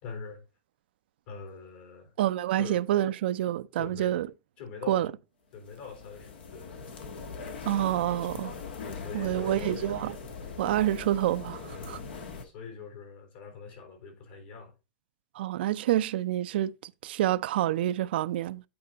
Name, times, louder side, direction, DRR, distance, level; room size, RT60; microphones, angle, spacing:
voice 1, 0.0-0.4 1.3-2.1 2.5-3.1 3.8-4.2 4.6-5.1 5.5-6.7 8.8-9.9 11.8-14.8, left 5 dB, 70° left, 3.7 m, -43 dB
voice 2, 2.2-4.3 4.9-5.1 7.7-8.5 9.1-10.1 10.6-12.0 15.4-18.6, right 13 dB, 80° right, 0.4 m, -28 dB
sound 1, 5.6-12.4, left 5 dB, 90° left, 1.3 m, -41 dB
8.6 x 4.4 x 3.8 m
hypercardioid pair, 115°, 5 cm